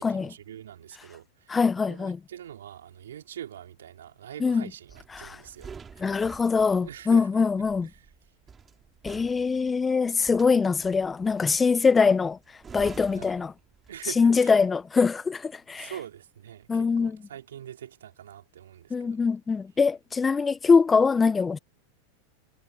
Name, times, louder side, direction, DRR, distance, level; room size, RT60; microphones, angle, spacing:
voice 1, 0.0-1.6 1.9-6.1 6.8-7.5 7.9-8.1 13.1-13.4 13.9-14.7 15.8-19.2, right 10 dB, 75° right, 3.4 m, -44 dB
voice 2, 1.5-2.2 4.4-4.6 5.1-5.4 6.0-7.9 9.0-12.4 12.7-13.5 14.2-15.9 16.7-17.2 18.9-21.6, left 5 dB, 20° left, 1.0 m, -23 dB
sound 1, 4.9-14.2 14.5-14.8, right 6 dB, 20° right, 3.0 m, -48 dB
hypercardioid pair, 90°, 0 cm